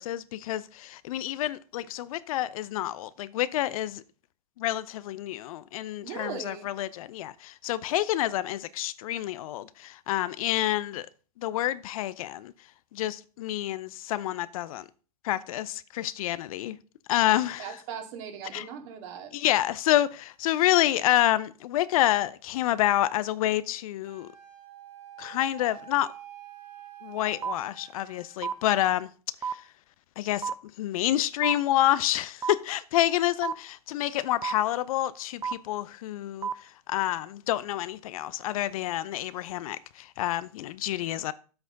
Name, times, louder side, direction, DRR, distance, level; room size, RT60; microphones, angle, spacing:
voice 1, 0.0-4.0 4.6-11.1 11.4-12.5 12.9-14.8 15.2-16.8 17.1-17.7 18.5-18.6 19.3-24.3 25.2-26.1 27.0-29.1 30.2-30.5 30.8-36.5 36.9-41.3, left 13 dB, 60° left, 0.6 m, -28 dB
voice 2, 6.0-6.7 17.6-19.3, right 7 dB, 50° right, 2.3 m, -39 dB
Wind instrument woodwind instrument, 24.0-29.0, right 10 dB, 80° right, 3.3 m, -47 dB
sound 1, 27.4-27.5 28.4-28.5 29.4-29.5 30.4-30.5 31.4-31.5 32.4-32.5 33.4-33.5 34.4-34.5 35.4-35.5 36.4-36.5, right 7 dB, 15° right, 0.6 m, -29 dB
9.2 x 7.9 x 3.9 m
hypercardioid pair, 110°, 20 cm